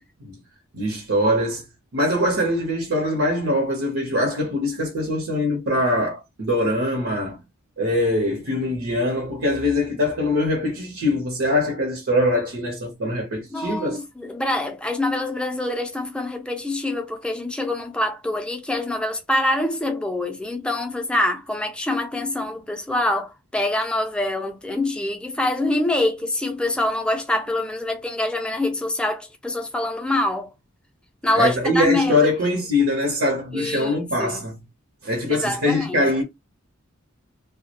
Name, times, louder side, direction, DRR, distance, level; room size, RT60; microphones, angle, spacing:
voice 1, 0.7-1.6 1.9-7.4 7.8-14.0 31.3-34.6 35.0-36.2, left 1 dB, 75° right, 0.7 m, -23 dB
voice 2, 13.5-30.5 31.2-32.3 33.5-34.4 35.3-36.0, left 1 dB, 5° left, 0.4 m, -25 dB
2.3 x 2.1 x 2.8 m
head